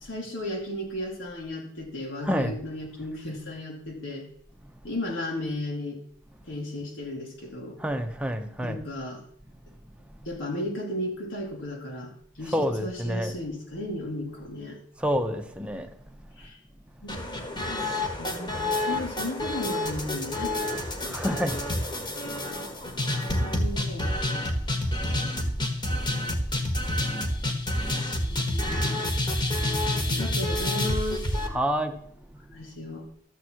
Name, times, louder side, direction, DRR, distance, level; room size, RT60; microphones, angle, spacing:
voice 1, 0.0-4.3 4.8-6.0 6.5-7.8 8.6-9.2 10.3-12.5 12.8-14.8 16.4-16.6 17.0-20.6 21.0-21.2 22.9-24.2 28.3-29.0 30.1-31.2 32.5-33.1, left 1 dB, 80° left, 2.5 m, -35 dB
voice 2, 2.2-2.5 7.8-8.8 12.5-13.3 15.0-15.9 21.1-21.6 31.5-31.9, equal, 5° right, 1.0 m, -27 dB
sound 1, 17.1-31.5, left 1 dB, 25° left, 1.6 m, -28 dB
12.5 x 7.9 x 4.6 m
head